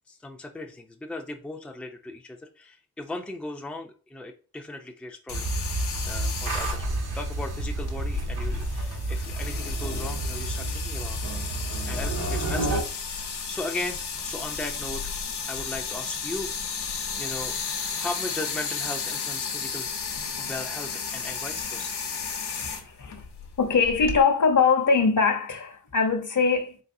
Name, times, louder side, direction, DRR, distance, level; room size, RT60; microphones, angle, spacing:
voice 1, 0.1-5.5 6.0-6.9 7.1-11.2 11.9-15.1 15.5-16.5 17.2-17.5 18.0-19.9 20.4-22.0, left 2 dB, 5° left, 0.5 m, -37 dB
sound 1, 5.3-24.2, left 5 dB, 85° left, 1.0 m, -33 dB
sound 2, 5.3-12.8, right 2 dB, 80° right, 2.0 m, -30 dB
voice 2, 22.5-23.2 23.6-26.8, left 5 dB, 50° left, 0.9 m, -22 dB
4.0 x 3.9 x 2.7 m
wide cardioid pair, 90°, 38 cm